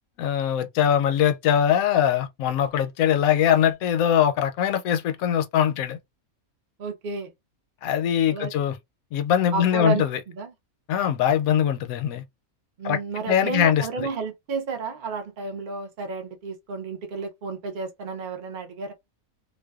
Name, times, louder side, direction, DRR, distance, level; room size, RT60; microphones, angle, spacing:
voice 1, 0.2-6.0 7.8-8.8 9.1-10.2 10.9-12.2 12.8-13.0 13.3-14.1, left 9 dB, 75° left, 1.0 m, -22 dB
voice 2, 6.8-7.3 8.3-8.5 9.5-10.1 10.4-10.5 12.8-18.9, right 4 dB, 50° right, 0.6 m, -31 dB
2.5 x 2.2 x 2.3 m
omnidirectional pair, 1.5 m